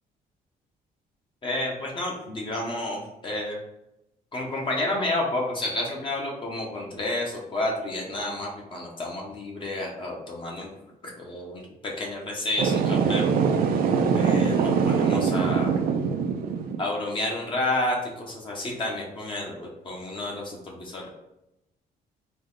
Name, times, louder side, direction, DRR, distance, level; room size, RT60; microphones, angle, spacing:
voice 1, 1.4-3.6 4.3-10.7 11.2-13.2 14.1-15.7 16.8-21.1, left 1 dB, 30° left, -2 dB, 0.9 m, -30 dB
sound 1, 12.6-16.8, right 6 dB, 70° right, 0.5 m, -23 dB
4.0 x 3.1 x 3.8 m, 0.87 s
cardioid pair, 160°, 16 cm